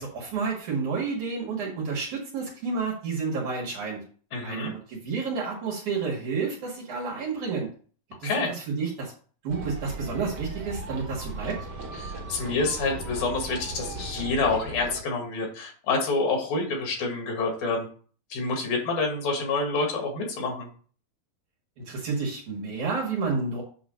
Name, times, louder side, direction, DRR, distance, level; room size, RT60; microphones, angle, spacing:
voice 1, 0.0-4.0 4.4-7.7 8.2-9.1 9.4-11.6 21.8-23.6, right 4 dB, 60° right, -3 dB, 3.0 m, -30 dB
voice 2, 4.3-4.7 8.2-8.5 12.0-17.9 18.3-20.7, left 3 dB, 90° left, 1 dB, 3.8 m, -27 dB
sound 1, 9.5-15.0, right 2 dB, 85° right, 0.9 m, -37 dB
8.2 x 3.1 x 6.3 m, 0.42 s
omnidirectional pair, 4.0 m